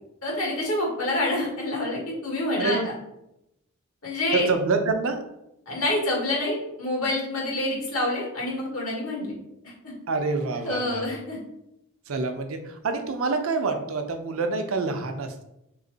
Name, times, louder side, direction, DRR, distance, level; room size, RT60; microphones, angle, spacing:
voice 1, 0.2-2.8 4.0-4.5 5.7-9.3 9.6-9.7 10.6-11.4, left 1 dB, 85° left, -2 dB, 1.6 m, -27 dB
voice 2, 2.5-2.9 4.3-5.2 10.1-11.1 12.1-15.4, right 3 dB, 70° right, 6 dB, 0.5 m, -27 dB
3.5 x 3.1 x 3.9 m, 0.85 s
head